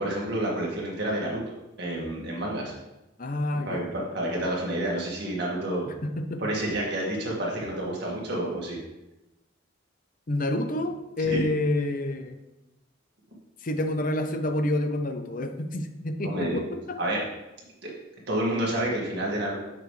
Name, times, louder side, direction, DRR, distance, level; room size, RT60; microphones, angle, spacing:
voice 1, 0.0-1.4 1.8-2.7 3.6-5.8 6.4-8.8 11.3-11.4 16.2-16.6 17.0-17.2 17.8-17.9 18.3-19.6, right 1 dB, 55° right, -3 dB, 2.0 m, -29 dB
voice 2, 3.2-3.9 6.0-6.4 10.3-12.4 13.6-17.0, left 1 dB, 40° left, 7 dB, 0.7 m, -28 dB
6.9 x 6.7 x 3.3 m, 0.97 s
head